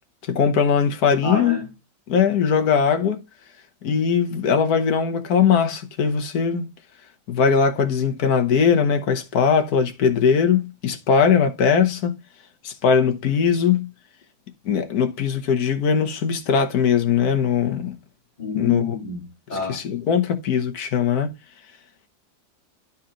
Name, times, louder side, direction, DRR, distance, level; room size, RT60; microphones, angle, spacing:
voice 1, 0.2-1.6 2.1-3.2 3.8-6.7 7.3-12.2 12.6-13.9 14.6-18.0 18.6-18.8 19.7-21.3, left 6 dB, 65° left, 1.5 m, -20 dB
voice 2, 1.2-1.7 18.4-19.8, left 4 dB, 30° left, 1.9 m, -28 dB
12.0 x 4.1 x 3.8 m
omnidirectional pair, 1.8 m